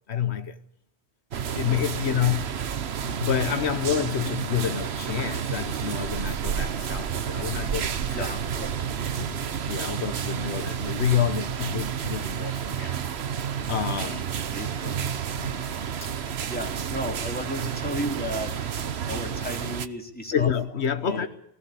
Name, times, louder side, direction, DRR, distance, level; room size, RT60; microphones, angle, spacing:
voice 1, 0.1-0.6 1.5-2.6 3.0-8.3 8.6-8.7 9.2-13.0 13.7-14.3 15.4-15.7 16.0-16.1 20.3-21.3, left 8 dB, 80° left, 1.3 m, -28 dB
sound 1, 1.3-19.9, right 8 dB, 75° right, 1.2 m, -30 dB
voice 2, 1.6-2.4 8.1-8.9 9.2-9.4 14.5-15.2 16.5-20.5 21.1-21.3, equal, 10° left, 3.4 m, -35 dB
20.5 x 16.5 x 8.4 m
omnidirectional pair, 1.1 m